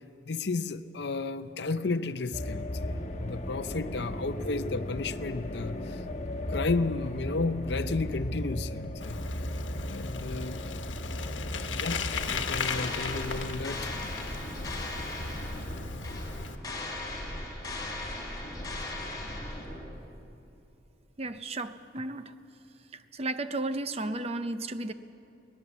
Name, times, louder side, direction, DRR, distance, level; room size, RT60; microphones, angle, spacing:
voice 1, 0.3-6.0 6.5-9.2 9.9-10.6 11.7-14.1, left 3 dB, 60° left, 12 dB, 0.6 m, -33 dB
sound 1, 2.3-12.6, left 1 dB, 40° left, 1.2 m, -36 dB
Bicycle, 9.0-16.6, left 4 dB, 75° left, 1.3 m, -36 dB
sound 2, 12.1-20.0, left 1 dB, 20° left, 4.2 m, -38 dB
voice 2, 21.2-22.3 22.9-24.9, right 2 dB, 35° right, 11 dB, 0.7 m, -34 dB
21.5 x 19.0 x 7.3 m, 2.8 s
head